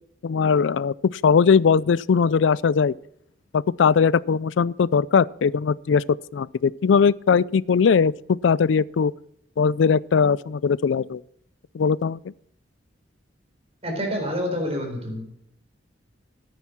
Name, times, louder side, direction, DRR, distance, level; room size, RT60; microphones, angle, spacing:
voice 1, 0.2-2.9 3.5-6.0 6.3-8.1 8.4-9.1 9.6-11.2 11.7-12.2, left 6 dB, 85° left, 0.4 m, -20 dB
voice 2, 13.8-15.4, equal, 35° right, 4.0 m, -28 dB
14.0 x 9.2 x 6.1 m
head